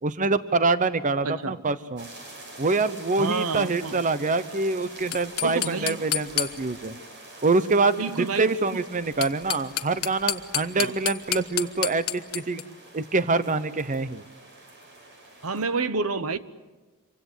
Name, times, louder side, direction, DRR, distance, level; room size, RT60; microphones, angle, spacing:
voice 1, 0.0-2.1 2.6-7.0 7.4-12.6 12.9-14.2, right 3 dB, 35° right, 0.8 m, -25 dB
voice 2, 1.2-1.5 3.2-4.0 5.4-6.0 8.0-8.5 10.8-10.9 15.4-16.4, right 4 dB, 75° right, 1.1 m, -28 dB
sound 1, 2.0-15.7, right 2 dB, 55° right, 7.4 m, -46 dB
sound 2, 5.0-6.9 9.0-12.6, left 13 dB, 80° left, 1.1 m, -30 dB
27.0 x 24.5 x 8.0 m
head